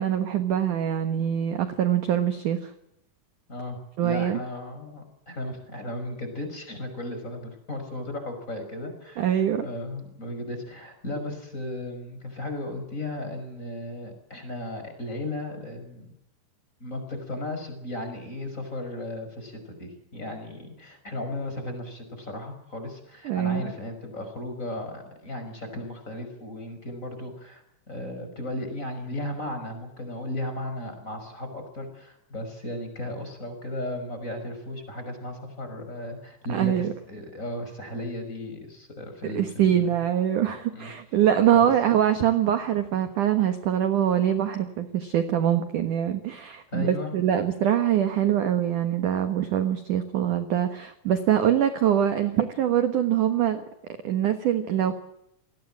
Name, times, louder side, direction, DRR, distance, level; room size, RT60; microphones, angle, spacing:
voice 1, 0.0-2.7 4.0-4.4 9.2-9.7 23.2-23.7 36.5-36.9 39.3-53.6 54.0-54.9, right 10 dB, 65° right, 9 dB, 2.1 m, -24 dB
voice 2, 3.5-16.1 16.8-39.9 40.8-40.9 41.5-41.7 46.7-47.1, left 1 dB, 15° left, 6 dB, 5.6 m, -35 dB
29.0 x 20.0 x 7.6 m, 0.80 s
omnidirectional pair, 5.5 m